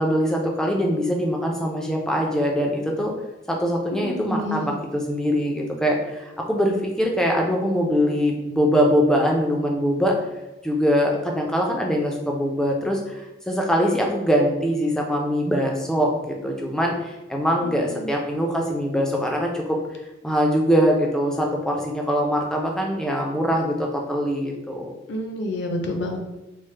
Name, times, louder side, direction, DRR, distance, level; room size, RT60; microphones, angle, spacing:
voice 1, 0.0-3.1 3.5-10.1 10.6-19.8 20.2-24.9, equal, 5° left, 0 dB, 0.4 m, -23 dB
voice 2, 3.9-4.7 17.6-18.1 25.1-26.2, left 1 dB, 65° left, 3 dB, 0.5 m, -29 dB
3.1 x 2.0 x 3.1 m, 1.0 s
head